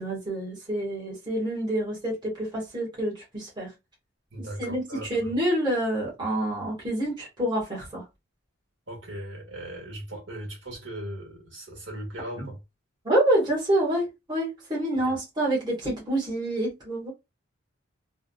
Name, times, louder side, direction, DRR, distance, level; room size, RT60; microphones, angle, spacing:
voice 1, 0.0-3.7 4.4-8.0 12.4-12.5 13.0-17.1, right 1 dB, 25° right, 1.5 m, -27 dB
voice 2, 4.3-5.3 8.9-12.6 15.0-15.2, right 1 dB, 65° right, 1.8 m, -38 dB
3.6 x 2.3 x 2.3 m
head